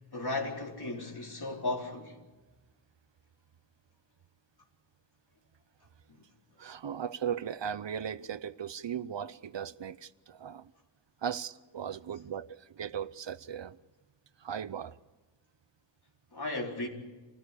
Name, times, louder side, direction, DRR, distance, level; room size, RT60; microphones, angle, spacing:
voice 1, 0.1-2.1 6.1-6.2 16.3-16.9, left 2 dB, 55° left, 4.2 m, -35 dB
voice 2, 6.6-10.7 11.2-13.8 14.4-14.9, right 8 dB, 70° right, 0.7 m, -37 dB
26.5 x 16.0 x 8.3 m
wide cardioid pair, 85°, 46 cm